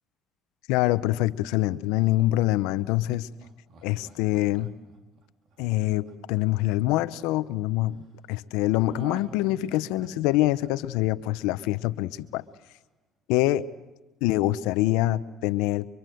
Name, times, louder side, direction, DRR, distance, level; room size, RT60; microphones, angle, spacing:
voice 1, 0.7-3.3 3.8-4.7 5.6-8.0 8.3-12.4 13.3-13.6 14.2-15.9, left 16 dB, 85° left, 13 dB, 0.9 m, -25 dB
Laughter, 3.0-7.3 8.8-11.8 12.2-12.3, right 4 dB, 65° right, 4.4 m, -48 dB
29.5 x 24.5 x 7.9 m, 1.1 s
supercardioid pair, 70°, 0 cm